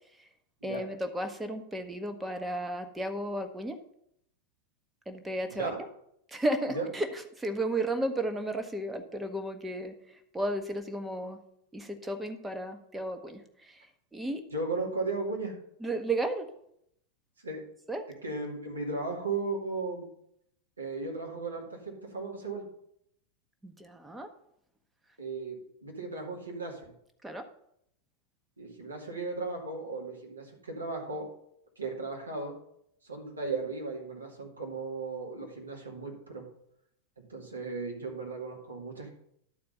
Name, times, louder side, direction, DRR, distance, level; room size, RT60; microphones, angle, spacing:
voice 1, 0.6-3.8 5.1-5.7 6.3-10.0 10.3-11.4 11.7-13.8 14.1-14.4 15.8-16.5 17.9-18.0 23.6-24.3 27.2-27.4, right 1 dB, 10° right, 6 dB, 0.9 m, -33 dB
voice 2, 14.5-15.5 17.4-17.6 18.2-20.1 20.8-22.6 25.2-26.8 28.6-31.3 31.8-32.5 33.0-36.4 37.3-39.1, right 3 dB, 80° right, -1 dB, 2.1 m, -36 dB
11.5 x 4.4 x 5.4 m, 0.74 s
figure-of-eight pair, 90°, 0 cm